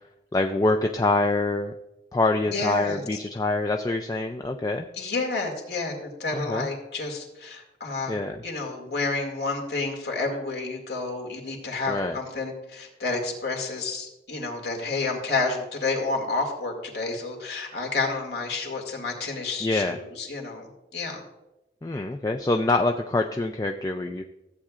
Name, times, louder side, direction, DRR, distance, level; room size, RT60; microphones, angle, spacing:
voice 1, 0.3-1.7 2.1-4.9 6.3-6.7 8.1-8.4 11.9-12.2 19.6-20.0 21.8-24.2, left 2 dB, 20° left, 4 dB, 0.3 m, -25 dB
voice 2, 2.5-3.0 4.9-8.1 8.4-21.2, left 3 dB, 70° left, 1 dB, 2.2 m, -30 dB
14.5 x 8.4 x 2.5 m, 0.96 s
head